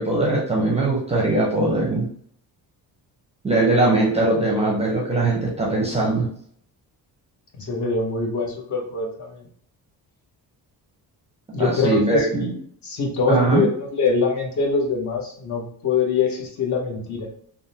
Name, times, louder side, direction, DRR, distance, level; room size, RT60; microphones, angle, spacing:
voice 1, 0.0-2.1 3.4-6.3 11.6-12.5 13.3-13.6, right 2 dB, 15° right, -2 dB, 0.5 m, -21 dB
voice 2, 7.6-9.5 11.5-12.5 12.8-17.3, left 4 dB, 50° left, 1 dB, 0.8 m, -24 dB
3.4 x 2.0 x 2.7 m, 0.62 s
cardioid pair, 165°, 39 cm